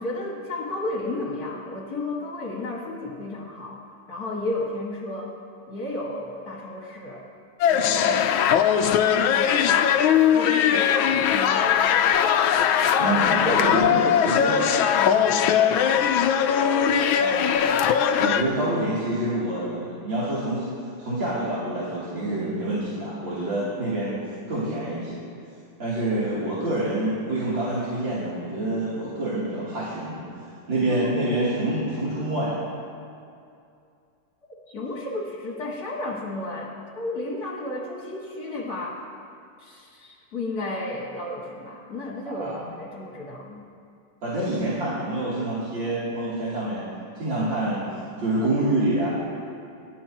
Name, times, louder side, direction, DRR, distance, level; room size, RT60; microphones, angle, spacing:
voice 1, 0.0-5.4 5.7-7.3 7.7-8.5 8.9-12.2 13.1-16.3 30.7-31.1 34.7-39.1 39.6-43.6, left 2 dB, 50° left, -3 dB, 2.3 m, -33 dB
sound 1, 7.6-18.4, left 8 dB, 85° left, 1.5 m, -20 dB
voice 2, 13.0-14.5 17.2-17.6 18.1-20.6 21.0-24.2 24.5-25.3 25.8-30.2 30.7-32.6 42.3-42.6 44.2-46.9 47.2-47.9 48.2-49.1, right 1 dB, 70° right, -10 dB, 3.8 m, -27 dB
28.5 x 13.0 x 2.9 m, 2.5 s
omnidirectional pair, 2.2 m